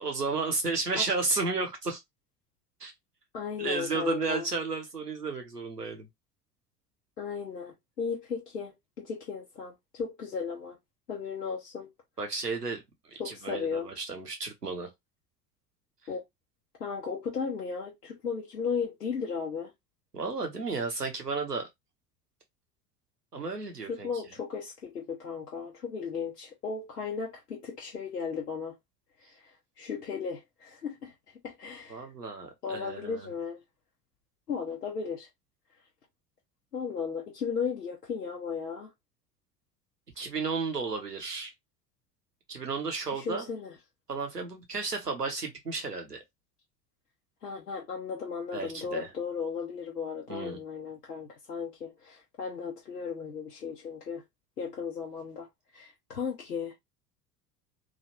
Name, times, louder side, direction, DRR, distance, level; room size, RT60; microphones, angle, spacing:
voice 1, 0.0-2.0 2.8-2.9 3.6-6.1 12.2-12.8 13.1-14.9 20.1-21.7 23.3-24.1 31.9-33.3 40.2-41.5 42.5-43.5 44.1-46.2 48.5-49.1 50.3-50.6, right 4 dB, 90° right, 0.9 m, -33 dB
voice 2, 3.3-4.5 7.2-10.8 11.1-11.9 13.2-13.9 16.1-16.2 16.8-19.7 23.9-28.8 29.3-29.5 29.8-31.1 31.4-32.1 32.6-33.6 34.5-35.3 36.7-38.9 43.1-43.7 47.4-54.2 54.6-55.5 55.7-56.7, left 6 dB, 85° left, 0.8 m, -35 dB
3.1 x 2.4 x 2.7 m
figure-of-eight pair, 70°, 46 cm